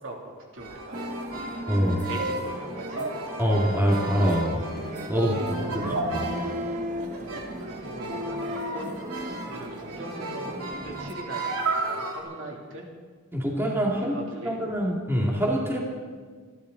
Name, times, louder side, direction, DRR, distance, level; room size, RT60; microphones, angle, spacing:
voice 1, 0.0-1.2 2.1-3.1 5.3-6.0 7.2-8.4 8.7-12.9 13.9-14.6, right 1 dB, 65° right, 0 dB, 2.9 m, -41 dB
sound 1, 0.6-12.2, right 2 dB, 80° right, 2.7 m, -34 dB
sound 2, 0.9-11.1, equal, 35° right, 1.0 m, -36 dB
voice 2, 1.7-2.0 3.4-4.7 5.1-5.4 5.7-5.8 6.1-6.2 13.3-14.2 14.4-15.8, equal, 10° right, -2 dB, 2.3 m, -24 dB
27.0 x 12.0 x 4.0 m, 1.5 s
head